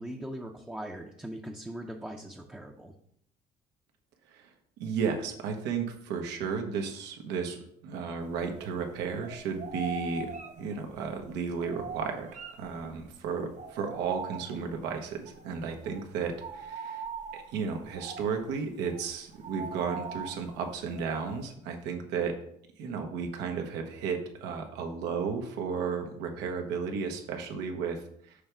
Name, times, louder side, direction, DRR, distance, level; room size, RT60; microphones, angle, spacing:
voice 1, 0.0-2.9, right 1 dB, 5° right, 1 dB, 0.6 m, -40 dB
voice 2, 4.8-12.3 12.6-17.0 17.3-22.4 22.8-28.3, right 6 dB, 90° right, 3 dB, 1.1 m, -34 dB
sound 1, 8.2-8.9 9.2-13.1 13.5-14.9 15.2-15.5 15.7-21.5, right 4 dB, 45° right, 0.8 m, -42 dB
6.5 x 3.4 x 6.0 m, 0.70 s
cardioid pair, 110°, 17 cm